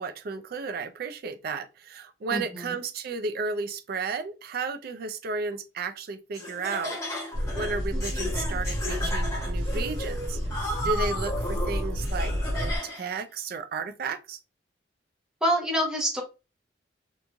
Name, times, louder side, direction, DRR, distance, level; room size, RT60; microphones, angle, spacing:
voice 1, 0.0-7.0 7.2-10.4 10.8-14.4, right 4 dB, 55° right, 0.4 m, -33 dB
voice 2, 2.3-2.7 15.4-16.2, equal, 5° right, 0.8 m, -26 dB
Laughter, 6.3-13.2, equal, 15° left, 1.1 m, -34 dB
sound 1, 7.3-12.8, equal, 75° right, 1.2 m, -30 dB
3.0 x 2.5 x 2.2 m
head